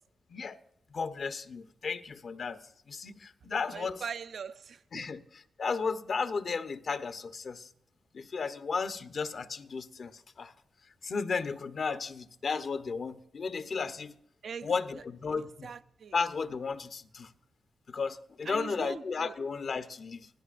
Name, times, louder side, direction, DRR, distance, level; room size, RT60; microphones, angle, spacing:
voice 1, 0.9-2.6 2.9-4.0 4.9-7.7 8.1-10.5 11.0-14.1 14.6-15.7 16.1-17.3 17.9-20.3, left 5 dB, 55° left, 1.0 m, -34 dB
voice 2, 3.7-5.1 14.4-14.7 15.6-16.1 18.5-19.3, right 6 dB, 65° right, 0.5 m, -41 dB
26.0 x 17.0 x 2.6 m
cardioid pair, 100°, 0 cm